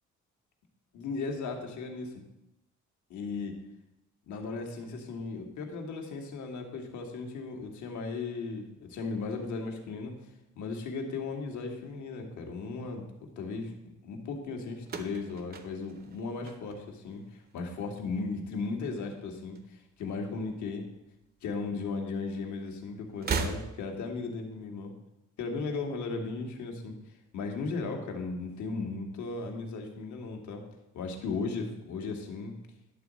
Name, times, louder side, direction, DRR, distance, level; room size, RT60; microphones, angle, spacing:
voice 1, 0.9-2.1 3.1-3.6 4.3-10.1 10.6-13.7 14.0-20.8 21.4-24.9 25.4-26.9 27.3-30.6 30.9-32.5, left 4 dB, 70° left, 2 dB, 1.8 m, -36 dB
sound 1, 14.8-17.2 17.5-18.1 19.1-20.1 20.4-20.5 21.6-21.7 23.1-24.1, right 5 dB, 30° right, 0.7 m, -37 dB
11.0 x 4.1 x 7.5 m, 0.88 s
cardioid pair, 165°, 30 cm